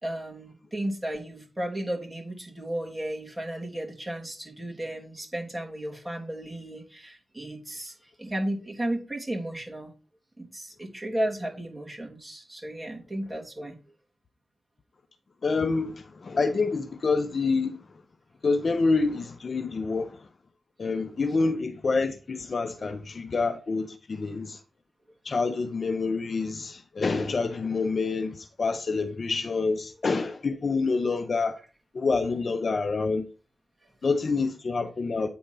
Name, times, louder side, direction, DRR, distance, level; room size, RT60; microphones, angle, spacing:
voice 1, 0.0-9.9 10.4-13.8 20.9-21.3 33.8-33.9, right 1 dB, 15° right, 3.1 m, -34 dB
voice 2, 15.4-17.8 18.4-20.2 20.8-24.6 25.2-31.5 31.9-33.3 34.0-35.3, left 4 dB, 50° left, 0.9 m, -27 dB
9.3 x 4.1 x 5.6 m
wide cardioid pair, 95°, 0 cm